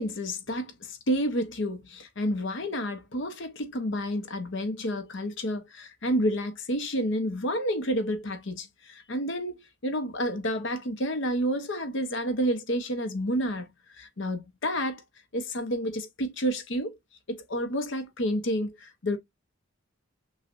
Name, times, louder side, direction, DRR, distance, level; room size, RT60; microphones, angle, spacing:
voice 1, 0.0-13.7 14.0-15.0 15.3-17.0 17.3-19.2, equal, 60° left, 0.9 m, -30 dB
6.3 x 2.4 x 2.5 m
head